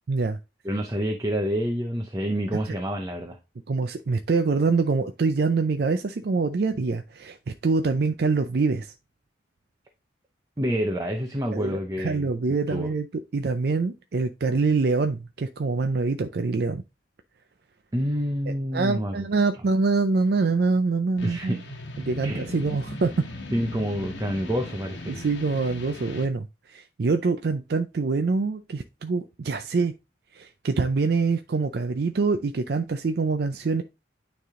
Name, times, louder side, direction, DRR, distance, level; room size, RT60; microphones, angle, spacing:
voice 1, 0.1-0.4 2.7-2.8 3.7-7.4 7.6-8.9 11.5-13.1 13.3-16.8 18.5-21.6 22.0-23.2 25.1-29.9 30.3-33.8, right 4 dB, 55° right, 0.4 m, -25 dB
voice 2, 0.6-3.4 10.6-12.3 12.7-12.9 17.9-19.3 21.2-21.6 22.2-22.5 23.5-25.2, equal, 20° right, 0.7 m, -28 dB
sound 1, 21.2-26.3, left 1 dB, 75° left, 1.3 m, -39 dB
9.2 x 3.4 x 3.6 m
head